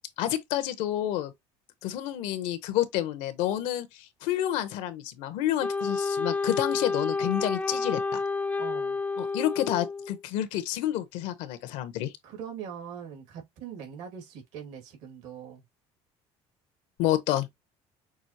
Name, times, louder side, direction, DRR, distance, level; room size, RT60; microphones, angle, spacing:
voice 1, 0.2-1.3 1.8-8.2 9.2-12.1 17.0-17.5, left 13 dB, 80° left, 0.9 m, -29 dB
Wind instrument woodwind instrument, 5.6-10.2, left 4 dB, 10° left, 0.4 m, -30 dB
voice 2, 8.6-9.0 12.2-15.6, right 7 dB, 75° right, 2.3 m, -42 dB
6.1 x 2.5 x 2.9 m
cardioid pair, 110°, 12 cm